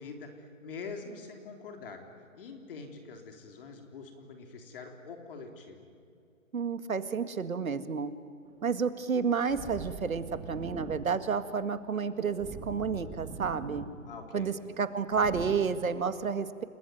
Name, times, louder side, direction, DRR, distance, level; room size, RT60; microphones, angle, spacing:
voice 1, 0.0-2.0 2.3-5.9 14.0-14.5, left 4 dB, 40° left, 4 dB, 3.6 m, -44 dB
voice 2, 6.5-8.1 8.6-13.8 14.3-16.6, right 5 dB, 85° right, 11 dB, 2.1 m, -30 dB
sound 1, 8.4-15.5, right 4 dB, 10° right, 1.5 m, -44 dB
30.0 x 20.5 x 9.3 m, 2.3 s
hypercardioid pair, 155°, 41 cm